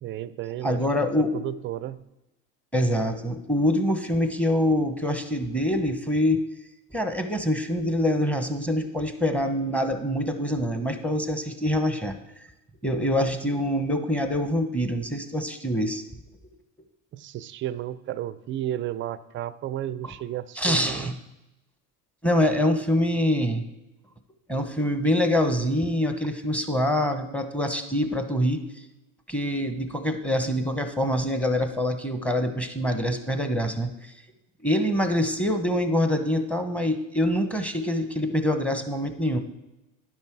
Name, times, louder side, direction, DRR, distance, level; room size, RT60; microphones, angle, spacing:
voice 1, 0.0-0.8 1.3-2.0 17.1-21.1, right 12 dB, 30° right, 15 dB, 0.4 m, -33 dB
voice 2, 0.6-1.5 2.7-6.4 6.9-12.1 12.8-16.0 20.0-20.1 20.5-21.1 22.2-23.6 24.5-28.6 29.3-34.1 34.6-39.4, left 1 dB, 5° left, 7 dB, 0.9 m, -25 dB
11.0 x 5.5 x 4.6 m, 0.95 s
supercardioid pair, 100°, 47 cm